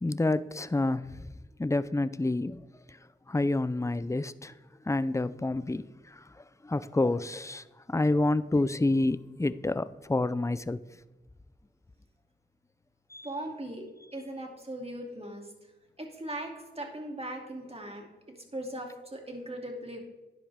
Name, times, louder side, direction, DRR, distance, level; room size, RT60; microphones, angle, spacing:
voice 1, 0.0-1.2 1.6-2.6 3.3-4.5 4.9-6.2 6.6-10.8 13.1-13.3, left 2 dB, 15° left, 15 dB, 0.5 m, -28 dB
voice 2, 13.2-15.7 16.0-18.1 18.5-20.0, right 1 dB, 30° right, 2 dB, 2.6 m, -39 dB
12.5 x 9.9 x 3.5 m, 1.1 s
cardioid pair, 45°, 20 cm